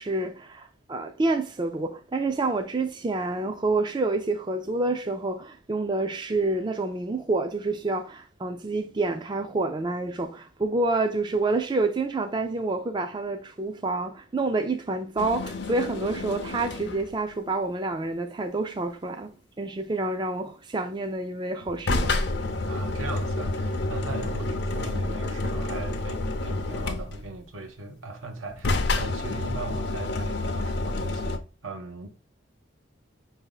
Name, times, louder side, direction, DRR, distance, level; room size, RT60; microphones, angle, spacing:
voice 1, 0.0-22.1, right 2 dB, 20° right, 0.4 m, -28 dB
sound 1, 15.2-17.1 21.6-27.4 28.5-31.4, left 2 dB, 55° left, 0.5 m, -29 dB
voice 2, 22.7-32.1, right 3 dB, 90° right, 1.0 m, -39 dB
5.1 x 2.7 x 3.8 m
head